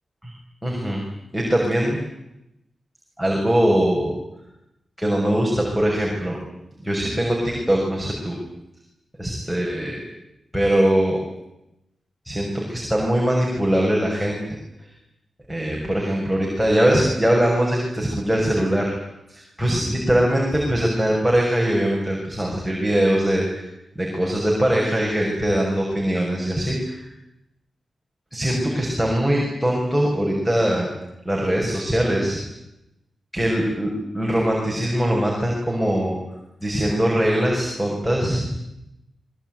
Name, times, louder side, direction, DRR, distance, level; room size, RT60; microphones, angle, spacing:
voice 1, 0.6-1.0 1.3-2.0 3.2-4.1 5.0-6.4 6.8-8.4 9.2-10.0 10.5-11.2 12.2-14.4 15.5-18.9 19.3-23.7 24.0-27.0 28.3-30.9 31.2-32.4 33.3-36.2 36.6-38.5, equal, ahead, -1 dB, 6.6 m, -21 dB
25.0 x 22.0 x 9.5 m, 0.86 s
wide cardioid pair, 115°, 0 cm